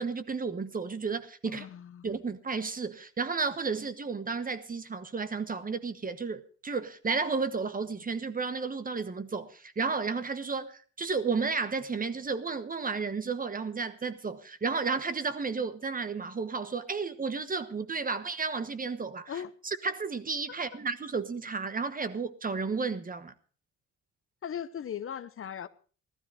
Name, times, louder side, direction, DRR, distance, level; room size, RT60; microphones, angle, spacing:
voice 1, 0.0-1.7 2.0-23.3, right 4 dB, 30° right, 1.2 m, -32 dB
voice 2, 1.4-2.0 19.3-19.5 24.4-25.7, left 8 dB, 45° left, 0.8 m, -38 dB
14.5 x 13.0 x 4.8 m
cardioid pair, 90°, 30 cm